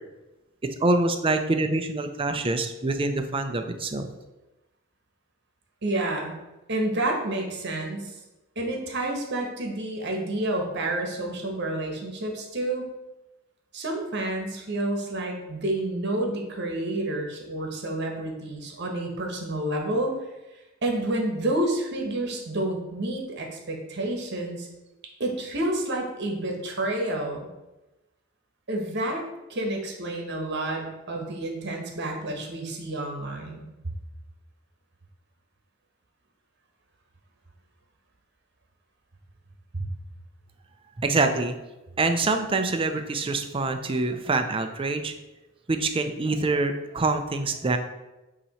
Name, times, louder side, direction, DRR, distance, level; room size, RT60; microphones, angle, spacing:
voice 1, 0.8-4.1 41.0-41.5 42.0-45.1 45.7-47.8, right 3 dB, 25° right, 7 dB, 0.5 m, -25 dB
voice 2, 5.8-6.3 6.7-8.2 8.5-12.9 13.7-20.1 20.8-24.7 25.2-27.5 28.7-29.2 29.5-33.7 39.7-39.9, right 1 dB, 55° right, 1 dB, 1.2 m, -29 dB
8.7 x 2.9 x 4.1 m, 1.0 s
head